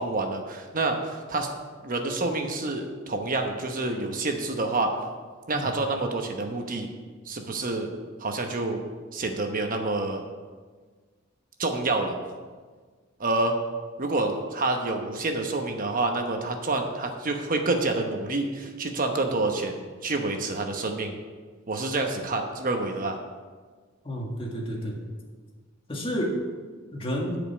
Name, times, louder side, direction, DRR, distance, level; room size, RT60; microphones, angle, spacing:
voice 1, 0.0-1.5 1.8-4.9 5.5-6.9 7.3-7.9 8.2-8.8 9.1-10.2 11.6-12.1 13.2-13.6 14.0-21.2 21.7-23.2, right 2 dB, 45° right, 4 dB, 1.0 m, -28 dB
voice 2, 24.0-25.0 25.9-26.4 26.9-27.4, equal, 30° left, -1 dB, 1.8 m, -30 dB
10.5 x 5.2 x 8.2 m, 1.5 s
head